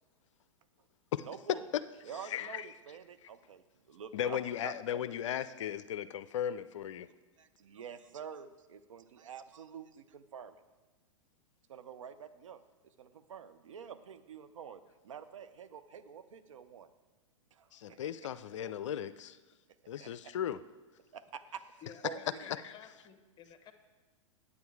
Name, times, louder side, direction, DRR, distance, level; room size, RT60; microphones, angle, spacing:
voice 1, 1.2-1.7 2.0-4.7 7.4-10.6 11.7-16.9 17.5-18.0 20.0-20.3 21.1-21.6 22.0-22.4, right 7 dB, 70° right, 0.7 m, -48 dB
voice 2, 2.2-2.7 4.1-7.1 17.7-19.4 19.9-20.6 22.5-22.7, left 10 dB, 65° left, 0.4 m, -36 dB
voice 3, 21.8-23.7, left 7 dB, 25° left, 1.1 m, -53 dB
9.6 x 8.5 x 4.7 m
hypercardioid pair, 105°, 17 cm